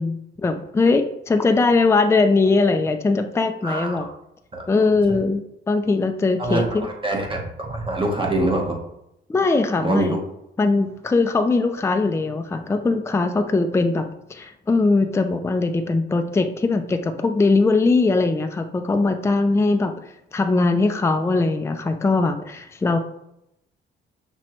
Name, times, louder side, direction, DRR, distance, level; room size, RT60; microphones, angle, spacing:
voice 1, 0.0-4.1 4.7-6.9 9.3-10.2 10.6-20.0 20.3-23.0, left 3 dB, 15° left, 6 dB, 0.4 m, -20 dB
voice 2, 3.6-4.1 4.5-4.6 6.4-8.7 9.8-10.2, right 1 dB, 25° right, 0 dB, 1.2 m, -24 dB
5.8 x 3.0 x 3.1 m, 0.81 s
cardioid pair, 90°, 20 cm